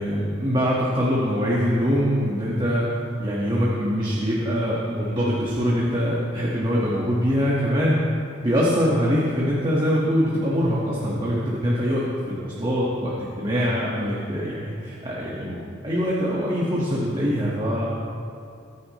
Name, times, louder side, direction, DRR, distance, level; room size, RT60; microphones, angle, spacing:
voice 1, 0.0-2.8 3.2-8.0 8.4-17.8, equal, 25° right, -6 dB, 1.8 m, -23 dB
23.5 x 10.5 x 3.2 m, 2.5 s
head